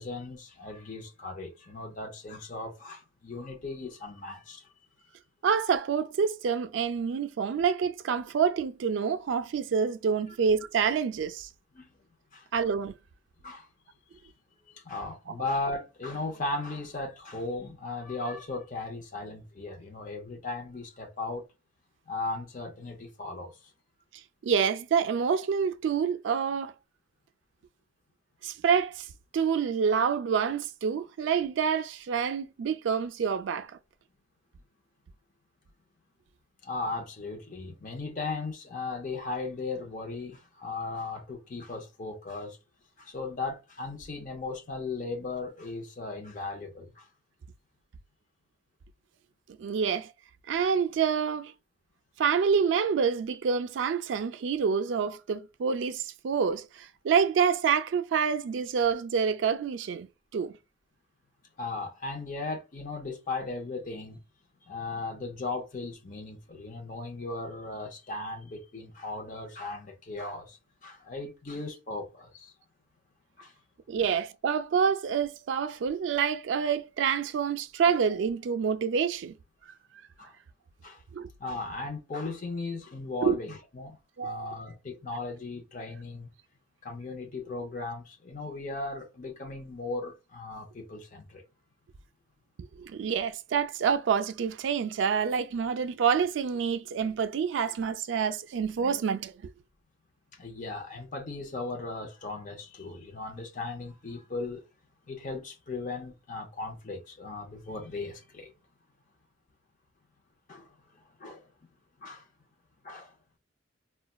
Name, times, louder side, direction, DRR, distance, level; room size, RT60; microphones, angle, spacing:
voice 1, 0.0-4.7 11.7-11.9 12.3-12.5 13.4-13.7 14.7-21.5 22.1-23.7 36.6-42.6 43.0-47.1 61.6-64.2 64.6-72.5 73.4-73.5 74.0-74.1 80.2-80.4 80.8-81.0 81.4-86.3 86.8-91.4 100.3-104.6 105.1-108.5 110.5-110.7 111.2-111.5 112.0-112.2 112.8-113.1, left 3 dB, 45° left, 0.6 m, -37 dB
voice 2, 5.4-11.5 12.5-12.9 24.4-26.7 28.4-29.1 29.3-33.7 49.6-50.1 50.5-51.5 52.2-60.1 60.3-60.5 73.9-79.4 81.1-81.3 83.2-83.4 84.2-84.5 92.8-99.5, right 6 dB, 70° right, 0.3 m, -27 dB
4.0 x 2.2 x 2.2 m
head